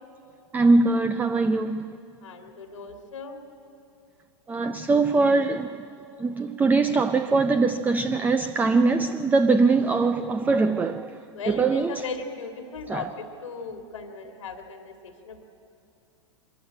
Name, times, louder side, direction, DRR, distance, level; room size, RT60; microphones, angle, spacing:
voice 1, 0.5-1.9 4.5-5.8 6.2-11.1 11.5-12.0 12.9-13.0, right 3 dB, 10° right, 0.4 m, -22 dB
voice 2, 2.2-3.4 11.3-15.4, left 4 dB, 85° left, 2.1 m, -37 dB
24.0 x 14.0 x 8.6 m
hypercardioid pair, 115°, 16 cm